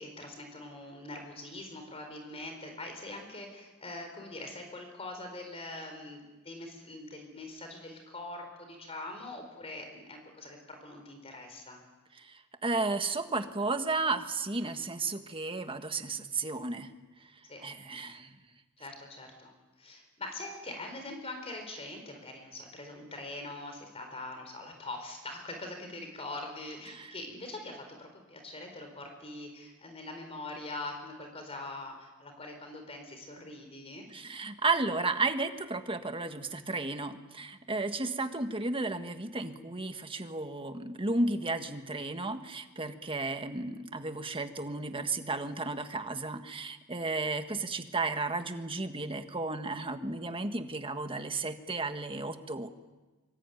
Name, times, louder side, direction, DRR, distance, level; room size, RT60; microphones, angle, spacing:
voice 1, 0.0-11.8 17.4-17.7 18.8-34.1 37.8-38.0, left 2 dB, 30° left, 4 dB, 4.3 m, -43 dB
voice 2, 12.2-16.9 17.6-18.3 26.9-27.1 34.1-52.7, right 3 dB, 25° right, 7 dB, 1.6 m, -33 dB
25.5 x 25.0 x 9.3 m, 1.2 s
head